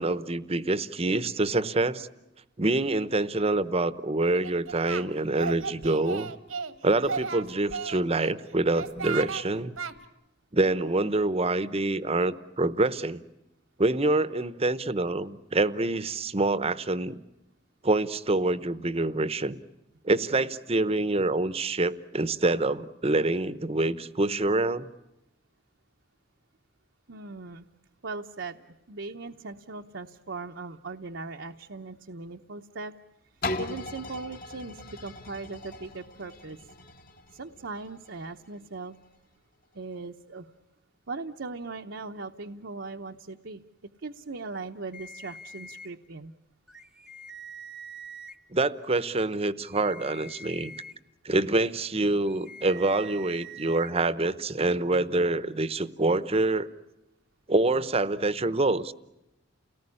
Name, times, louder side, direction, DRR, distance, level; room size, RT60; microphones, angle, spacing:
voice 1, 0.0-2.1 2.6-6.3 6.8-9.8 10.5-13.2 13.8-17.2 17.8-19.6 20.0-24.9 48.5-50.7 51.2-56.7 57.5-58.9, right 2 dB, 30° right, 15 dB, 0.9 m, -26 dB
Singing, 4.3-5.1 5.4-6.7 7.0-8.3 8.7-9.4 9.8-9.9, right 5 dB, 90° right, 1.6 m, -34 dB
voice 2, 27.1-27.7 28.0-32.9 33.6-36.7 37.3-38.9 39.7-40.5 41.1-43.6 44.0-46.3, right 3 dB, 65° right, 4 dB, 0.9 m, -39 dB
sound 1, 33.4-39.2 39.7-39.8, left 2 dB, 45° left, 1.9 m, -39 dB
sound 2, 44.9-45.9 46.7-48.3 49.6-50.9 52.3-53.9, right 2 dB, 5° right, 1.1 m, -45 dB
30.0 x 19.0 x 9.9 m, 0.94 s
head